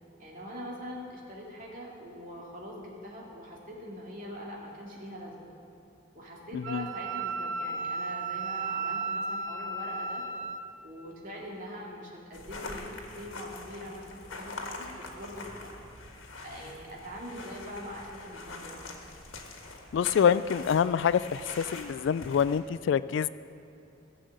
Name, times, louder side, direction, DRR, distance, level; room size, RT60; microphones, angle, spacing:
voice 1, 0.2-5.5 6.1-10.2 10.8-15.8 16.4-19.1, equal, 45° right, -3 dB, 2.6 m, -43 dB
Wind instrument woodwind instrument, 6.6-10.7, right 3 dB, 65° right, 0.7 m, -34 dB
sound 1, 12.3-22.6, left 3 dB, 85° left, 1.7 m, -44 dB
voice 2, 19.9-23.3, left 7 dB, 65° left, 16 dB, 0.3 m, -26 dB
16.5 x 6.9 x 7.5 m, 2.8 s
head